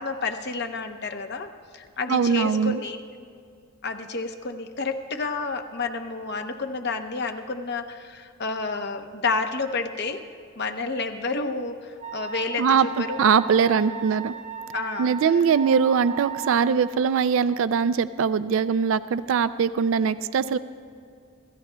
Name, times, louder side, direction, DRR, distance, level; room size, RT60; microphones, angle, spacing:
voice 1, 0.0-1.5 1.7-3.0 3.8-10.2 10.6-13.3 13.8-14.0 14.7-15.1, left 4 dB, 50° left, 7 dB, 0.8 m, -30 dB
voice 2, 2.1-2.8 12.6-14.3 15.0-20.6, right 6 dB, 60° right, 14 dB, 0.3 m, -22 dB
Wind instrument woodwind instrument, 12.0-16.9, right 8 dB, 35° right, 1.0 m, -36 dB
27.0 x 15.0 x 2.2 m, 2.4 s
head